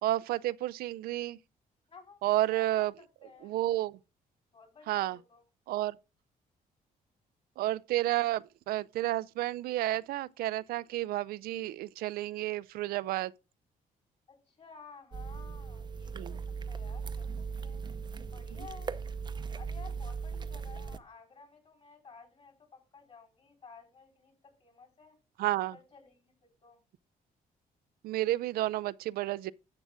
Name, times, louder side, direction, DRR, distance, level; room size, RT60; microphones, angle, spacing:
voice 1, 0.0-1.4 2.2-2.9 3.4-3.9 4.9-5.2 5.7-5.9 7.6-13.3 16.1-16.4 25.4-25.7 28.0-29.5, right 15 dB, 90° right, 0.4 m, -31 dB
voice 2, 1.9-2.2 2.5-2.9 3.2-3.5 4.5-5.4 14.3-16.4 16.7-17.8 18.3-19.0 19.5-25.2 25.7-26.3 26.6-26.8, left 5 dB, 40° left, 4.2 m, -54 dB
sound 1, 15.1-21.0, right 5 dB, 30° right, 0.6 m, -38 dB
11.5 x 7.1 x 3.6 m
cardioid pair, 105°, 15 cm